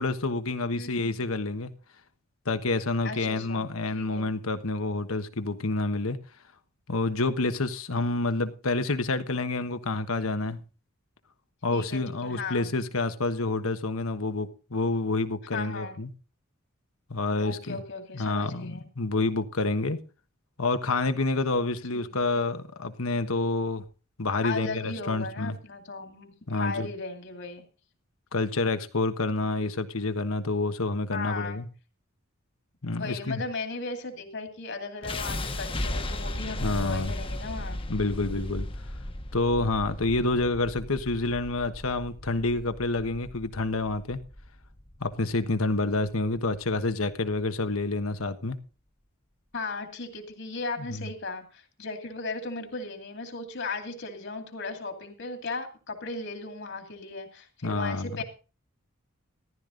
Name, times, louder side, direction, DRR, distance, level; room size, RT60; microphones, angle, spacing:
voice 1, 0.0-1.7 2.4-6.2 6.9-10.6 11.6-16.1 17.1-17.8 18.1-20.0 20.6-23.8 24.2-25.5 26.5-26.9 28.3-31.7 32.8-33.4 36.6-37.1 37.9-38.7 39.3-44.2 45.0-48.6 50.9-51.1 57.6-58.2, left 2 dB, 80° left, 1.3 m, -28 dB
voice 2, 0.7-1.2 3.0-3.7 3.9-4.3 11.7-12.7 15.5-16.0 17.4-18.9 21.9-22.3 24.4-27.6 31.1-31.6 32.9-37.8 49.5-58.2, left 3 dB, 60° left, 2.5 m, -36 dB
sound 1, 35.0-47.1, left 1 dB, 25° left, 1.2 m, -36 dB
14.5 x 12.0 x 3.9 m
head